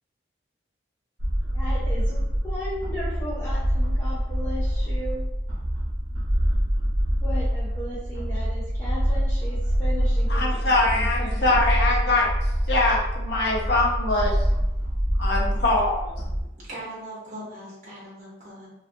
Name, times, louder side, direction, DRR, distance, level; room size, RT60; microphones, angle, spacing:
sound 1, 1.2-16.4, equal, 90° right, 0.6 m, -25 dB
voice 1, 1.5-5.2 7.2-10.6 10.9-11.6 11.9-12.1, left 1 dB, 15° left, -10 dB, 0.5 m, -36 dB
voice 2, 10.3-14.5 15.2-16.2, left 2 dB, 65° left, -3 dB, 0.6 m, -23 dB
voice 3, 16.7-18.7, right 1 dB, 45° right, -6 dB, 0.7 m, -39 dB
2.4 x 2.3 x 2.5 m, 0.89 s
head